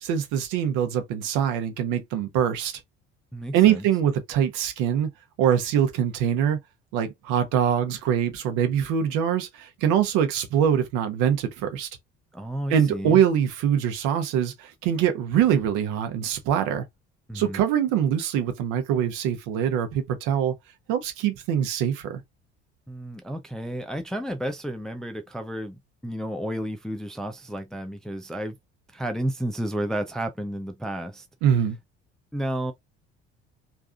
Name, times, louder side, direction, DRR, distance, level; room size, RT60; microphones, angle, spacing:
voice 1, 0.0-2.7 3.5-5.1 5.4-6.6 6.9-11.9 12.7-16.8 17.3-20.5 20.9-22.2 31.4-31.8, right 9 dB, 55° right, 1.0 m, -23 dB
voice 2, 3.3-3.9 12.3-13.2 17.3-17.6 22.9-28.6 28.9-31.3 32.3-32.7, right 1 dB, ahead, 0.5 m, -32 dB
3.4 x 2.6 x 2.4 m
figure-of-eight pair, 60°, 36 cm